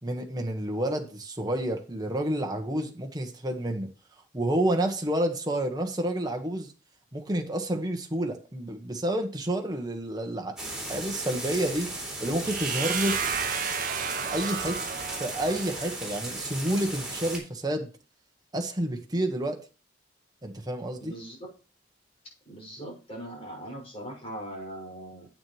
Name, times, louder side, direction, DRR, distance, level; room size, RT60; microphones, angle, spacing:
voice 1, 0.0-3.9 4.3-6.7 7.1-10.6 10.8-11.9 12.2-13.2 14.2-14.8 15.2-17.9 18.5-19.6 20.4-21.1, right 1 dB, 20° right, 1.5 m, -29 dB
sound 1, 10.6-17.4, right 2 dB, 5° right, 4.1 m, -35 dB
sound 2, 12.5-16.3, right 7 dB, 45° right, 0.8 m, -33 dB
voice 2, 21.0-21.4 22.4-25.3, right 1 dB, 30° left, 6.2 m, -40 dB
9.9 x 8.8 x 3.2 m
head